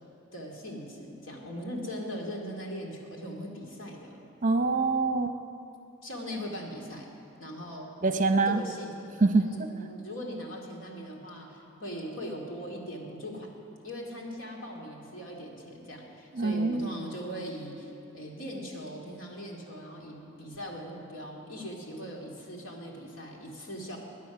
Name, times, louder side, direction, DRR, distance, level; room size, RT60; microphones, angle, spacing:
voice 1, 0.3-4.2 6.0-7.1 7.4-7.9 8.4-9.1 9.4-13.5 13.8-24.0, equal, 80° left, 0 dB, 2.5 m, -40 dB
voice 2, 4.4-5.3 8.0-8.6 9.2-9.7 16.4-16.9, right 3 dB, 40° right, 7 dB, 0.8 m, -25 dB
21.5 x 9.4 x 6.1 m, 2.7 s
head